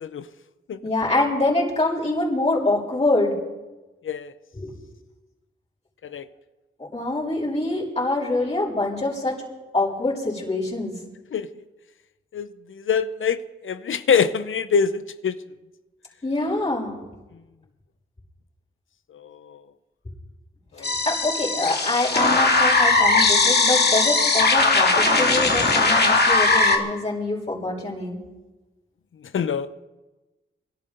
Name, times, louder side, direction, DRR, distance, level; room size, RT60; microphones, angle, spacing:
voice 1, 0.8-3.4 4.5-4.7 6.9-9.4 9.7-11.0 16.2-17.0 20.8-28.2, left 2 dB, 30° left, -5 dB, 7.0 m, -25 dB
voice 2, 12.3-15.4 20.8-20.9 29.3-29.7, left 6 dB, 75° left, 13 dB, 0.8 m, -24 dB
sound 1, 20.8-26.8, left 3 dB, 55° left, 2.2 m, -19 dB
24.5 x 13.0 x 4.0 m, 1.1 s
cardioid pair, 65°, 21 cm